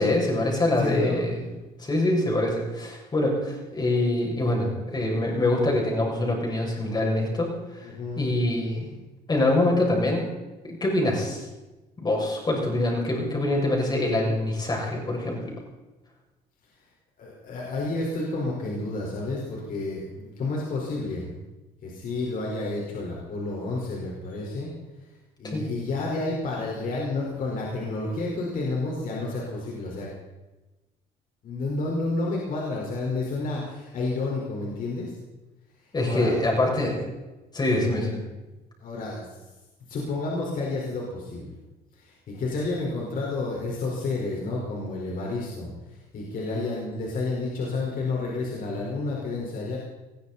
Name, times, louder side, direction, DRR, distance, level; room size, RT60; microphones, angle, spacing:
voice 1, 0.0-1.5 1.8-7.9 8.1-8.9 9.3-10.3 10.6-11.4 12.0-15.5 25.5-25.7 35.9-37.0 37.5-38.2, left 1 dB, 25° left, -1 dB, 6.8 m, -25 dB
voice 2, 0.7-1.2 7.8-8.3 17.2-21.3 21.8-24.7 25.4-30.1 31.4-35.2 36.0-36.3 38.8-39.3 39.9-41.6 41.9-49.8, left 3 dB, 55° left, -3 dB, 4.7 m, -30 dB
21.0 x 16.0 x 4.3 m, 1.1 s
cardioid pair, 110°, 17 cm